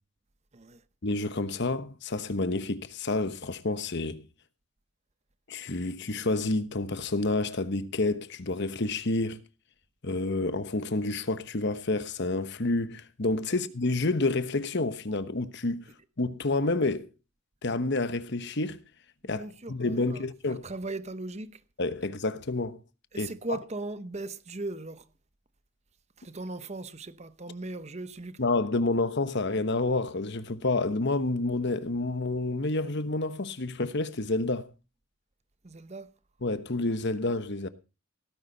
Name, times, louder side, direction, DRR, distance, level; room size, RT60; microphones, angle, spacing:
voice 1, 1.0-4.2 5.5-9.4 10.0-15.9 16.2-17.1 17.6-18.8 19.2-20.7 21.8-22.8 23.2-23.3 28.4-34.7 36.4-37.7, left 2 dB, 55° left, 1.1 m, -29 dB
voice 2, 19.2-21.6 23.1-25.1 26.2-28.4 35.6-36.1, right 2 dB, 30° right, 0.9 m, -38 dB
18.0 x 9.9 x 4.0 m
head